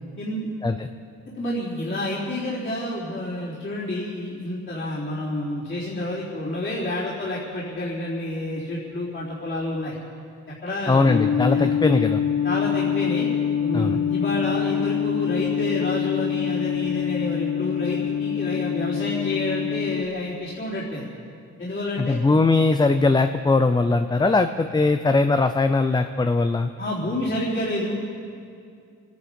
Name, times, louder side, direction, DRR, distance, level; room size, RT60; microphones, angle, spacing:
voice 1, 0.2-0.5 1.4-9.9 10.6-11.0 11.5-11.7 12.4-13.3 13.6-21.1 21.6-22.2 26.8-27.9, left 1 dB, 40° left, -8 dB, 3.9 m, -29 dB
voice 2, 10.9-12.2 13.7-14.0 22.0-26.7, left 3 dB, 15° left, 8 dB, 0.6 m, -20 dB
sound 1, 11.1-20.0, left 8 dB, 65° left, 1.2 m, -25 dB
25.0 x 10.5 x 5.4 m, 2.3 s
cardioid pair, 90°, 30 cm